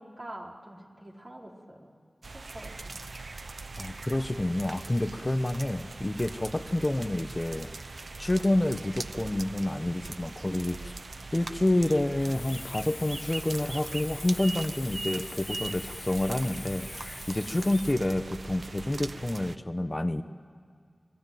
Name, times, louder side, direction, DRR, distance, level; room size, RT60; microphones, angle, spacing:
voice 1, 0.0-1.9 2.3-3.0, right 1 dB, 45° right, -1 dB, 4.4 m, -45 dB
sound 1, 2.2-19.6, right 3 dB, 75° right, 0.8 m, -41 dB
voice 2, 3.8-10.9 11.3-20.2, left 1 dB, 30° left, 9 dB, 0.9 m, -28 dB
Hiss, 12.2-17.9, left 3 dB, 90° left, 2.0 m, -44 dB
30.0 x 21.5 x 9.2 m, 2.3 s
wide cardioid pair, 55°, 0 cm